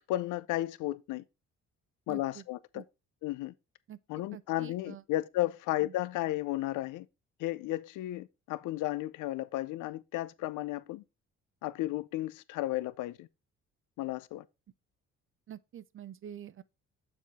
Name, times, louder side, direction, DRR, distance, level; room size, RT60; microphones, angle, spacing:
voice 1, 0.1-1.2 2.1-2.8 3.2-3.5 4.1-7.1 7.4-11.0 11.6-13.3 14.0-14.4, left 16 dB, 90° left, 0.5 m, -34 dB
voice 2, 2.1-2.5 2.7-2.8 3.9-4.0 4.3-5.0 5.8-6.0 15.5-16.6, right 10 dB, 45° right, 0.5 m, -47 dB
7.0 x 4.7 x 4.1 m
cardioid pair, 90°, 30 cm